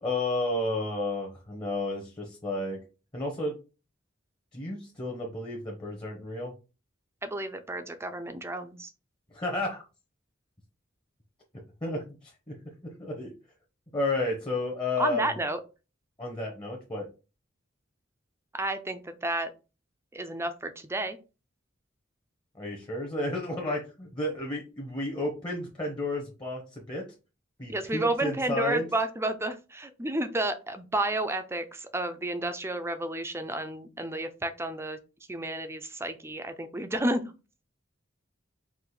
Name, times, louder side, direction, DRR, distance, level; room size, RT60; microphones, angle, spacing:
voice 1, 0.0-2.8 3.1-3.5 4.5-6.5 9.3-9.8 11.8-12.5 12.8-13.3 13.9-15.3 16.2-17.1 22.5-27.1 27.6-28.9, left 2 dB, 25° left, 0 dB, 1.0 m, -32 dB
voice 2, 7.2-8.9 15.0-15.6 18.5-19.5 20.1-21.2 27.7-35.0 35.3-37.2, right 2 dB, 15° right, 8 dB, 0.5 m, -31 dB
4.8 x 2.5 x 3.8 m, 0.30 s
head